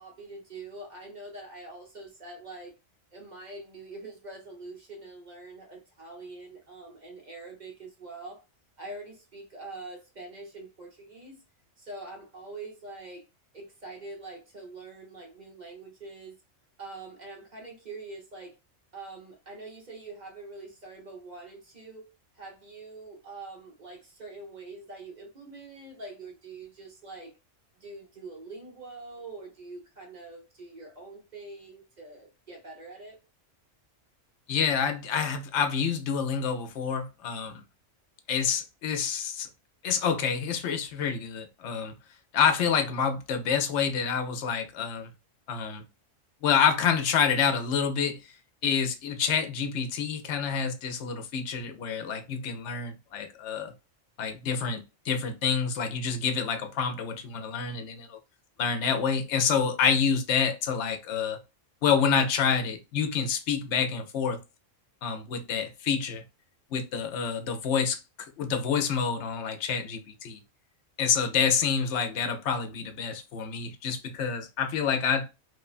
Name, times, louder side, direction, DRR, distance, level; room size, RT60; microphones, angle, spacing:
voice 1, 0.0-2.7 3.1-8.4 8.8-11.4 11.8-13.2 13.5-16.4 16.8-18.6 18.9-22.1 22.3-27.3 27.8-33.2, right 2 dB, 45° right, 0.8 m, -44 dB
voice 2, 34.5-37.6 38.3-39.5 39.8-42.0 42.3-45.1 45.5-45.8 46.4-48.2 48.6-53.7 54.2-58.2 58.6-61.4 61.8-64.4 65.0-66.2 66.7-68.0 68.4-70.4 71.0-75.3, left 6 dB, 70° left, 0.9 m, -27 dB
3.1 x 2.2 x 2.4 m
omnidirectional pair, 1.3 m